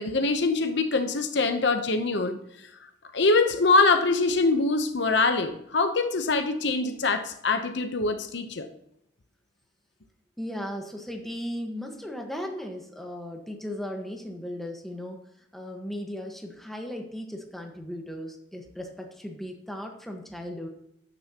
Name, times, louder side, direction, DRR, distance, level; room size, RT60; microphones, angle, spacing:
voice 1, 0.0-2.4 3.1-8.7, left 3 dB, 65° left, 8 dB, 0.8 m, -24 dB
voice 2, 10.4-15.2 15.5-20.7, equal, ahead, 2 dB, 1.3 m, -36 dB
13.0 x 9.9 x 2.9 m, 0.78 s
head